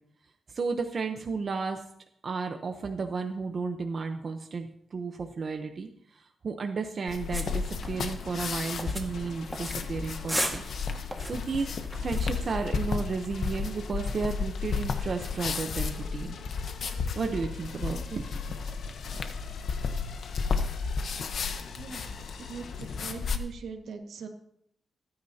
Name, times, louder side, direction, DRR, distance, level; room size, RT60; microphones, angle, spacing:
voice 1, 0.5-1.8 2.2-10.6 11.3-11.7 12.0-16.4 17.2-18.6, right 4 dB, 45° right, 5 dB, 0.9 m, -33 dB
sound 1, 7.1-23.4, left 5 dB, 60° left, 1.1 m, -33 dB
sound 2, 7.2-23.3, left 5 dB, 85° left, 1.5 m, -47 dB
sound 3, 7.3-14.3, equal, ahead, 1.8 m, -39 dB
voice 2, 21.8-22.1 22.5-22.7 23.0-24.3, right 5 dB, 80° right, 4 dB, 1.7 m, -41 dB
27.5 x 9.7 x 2.9 m, 0.72 s
wide cardioid pair, 135°, 0 cm